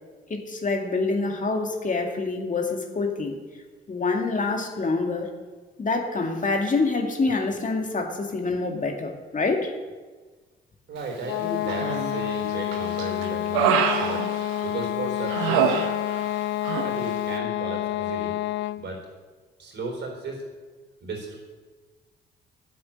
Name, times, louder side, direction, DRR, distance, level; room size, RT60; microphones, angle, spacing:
voice 1, 0.3-3.4 3.9-5.3 5.8-9.7, left 3 dB, 40° left, 3 dB, 2.1 m, -26 dB
voice 2, 10.9-14.2 14.6-15.8 16.8-18.3 18.8-19.1 19.6-20.5 21.0-21.4, right 3 dB, 60° right, 1 dB, 4.0 m, -35 dB
sound 1, 11.2-18.9, left 14 dB, 70° left, 0.4 m, -28 dB
Human voice, 11.7-12.3 12.7-14.9 15.3-16.4 16.6-16.9, right 7 dB, 90° right, 1.1 m, -25 dB
9.3 x 7.7 x 8.8 m, 1.3 s
supercardioid pair, 60°, 20 cm